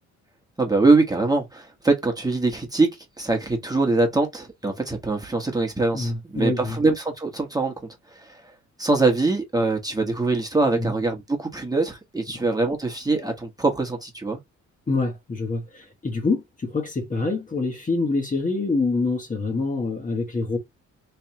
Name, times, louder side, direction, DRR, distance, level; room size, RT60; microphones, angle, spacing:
voice 1, 0.6-7.7 8.1-8.4 8.8-14.4, right 3 dB, 10° right, 1.3 m, -23 dB
voice 2, 5.9-6.8 10.7-11.0 14.9-20.6, left 3 dB, 25° left, 1.3 m, -26 dB
3.3 x 3.3 x 2.9 m
cardioid pair, 90°, 30 cm